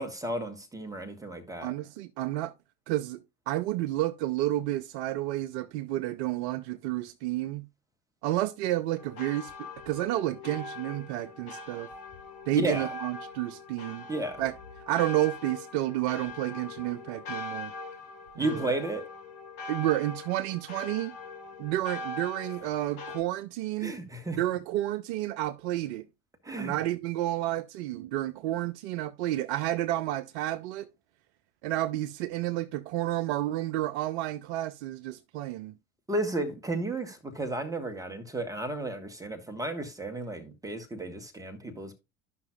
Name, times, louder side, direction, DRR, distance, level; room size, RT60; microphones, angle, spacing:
voice 1, 0.0-1.7 12.5-12.9 14.1-14.4 18.4-19.1 23.8-24.4 26.4-26.8 36.1-41.9, right 2 dB, 10° right, 1.4 m, -33 dB
voice 2, 1.6-2.5 2.9-7.6 8.2-11.9 12.5-14.1 14.4-14.5 14.9-17.7 18.4-18.7 19.7-21.1 21.6-23.9 24.4-26.1 26.5-30.9 31.6-35.7, right 15 dB, 60° right, 0.5 m, -30 dB
sound 1, 9.0-23.2, left 3 dB, 70° left, 2.1 m, -42 dB
12.0 x 5.8 x 2.3 m
figure-of-eight pair, 65°, 38 cm